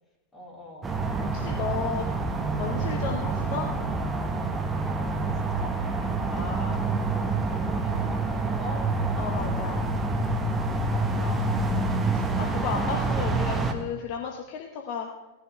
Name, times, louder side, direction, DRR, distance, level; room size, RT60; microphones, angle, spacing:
voice 1, 0.3-1.0 5.1-5.7 6.3-8.8 10.9-11.9, left 1 dB, 15° left, -3 dB, 3.6 m, -42 dB
sound 1, 0.8-13.7, right 3 dB, 15° right, 1.3 m, -27 dB
voice 2, 1.3-2.0 2.6-3.7 6.3-6.6 9.2-9.8 12.1-15.1, left 6 dB, 45° left, 2 dB, 1.1 m, -33 dB
18.5 x 10.5 x 3.3 m, 1.0 s
figure-of-eight pair, 90°, 0 cm